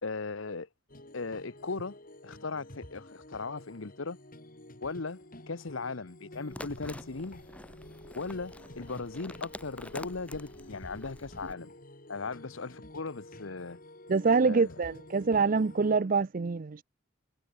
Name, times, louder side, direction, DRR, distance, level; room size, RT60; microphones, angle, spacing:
voice 1, 0.0-0.7 1.1-2.0 2.2-4.2 4.8-5.2 5.5-7.4 8.1-11.7 12.1-13.8 14.4-14.7, left 4 dB, 75° left, 1.1 m, -38 dB
sound 1, 0.9-16.0, left 1 dB, 45° left, 5.0 m, -50 dB
sound 2, 6.5-11.5, left 1 dB, 5° left, 2.1 m, -47 dB
voice 2, 14.1-16.8, right 4 dB, 45° right, 0.5 m, -25 dB
head